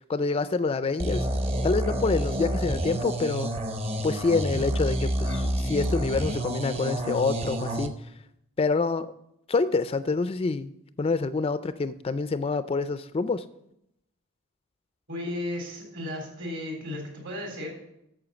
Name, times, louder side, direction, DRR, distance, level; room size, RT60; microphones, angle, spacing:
voice 1, 0.1-1.3 1.6-3.5 4.0-7.9 8.6-9.1 9.5-10.7 11.0-13.4, left 4 dB, 25° left, 13 dB, 0.3 m, -26 dB
sound 1, 1.0-7.9, right 1 dB, 30° right, 0.8 m, -28 dB
voice 2, 15.1-17.7, left 1 dB, 60° right, 1 dB, 3.7 m, -34 dB
8.9 x 7.0 x 7.0 m, 0.81 s
head